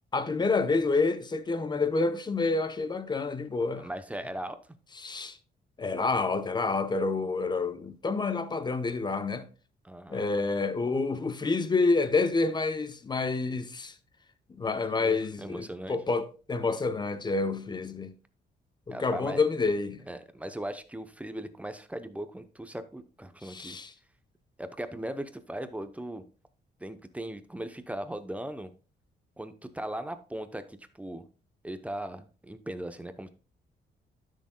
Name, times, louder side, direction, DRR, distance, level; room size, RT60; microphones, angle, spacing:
voice 1, 0.1-3.9 5.0-5.4 5.8-9.5 10.1-13.9 14.5-18.1 18.9-20.0 23.4-23.9, left 3 dB, 25° left, 0.8 m, -28 dB
voice 2, 3.8-4.6 9.8-10.3 15.0-16.0 18.9-19.4 20.1-23.8 24.6-26.2 26.8-28.7 29.4-31.2 31.6-33.3, right 1 dB, 5° right, 0.7 m, -38 dB
12.0 x 6.4 x 2.2 m
cardioid pair, 110°, 18 cm